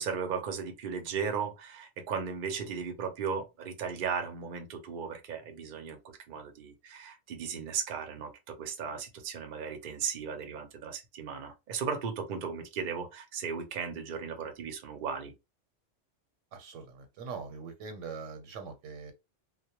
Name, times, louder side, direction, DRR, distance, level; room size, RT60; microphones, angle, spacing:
voice 1, 0.0-6.0 6.3-15.3, right 6 dB, 55° right, 0.6 m, -36 dB
voice 2, 16.5-19.1, right 5 dB, 85° right, 1.1 m, -42 dB
2.2 x 2.1 x 2.8 m
omnidirectional pair, 1.3 m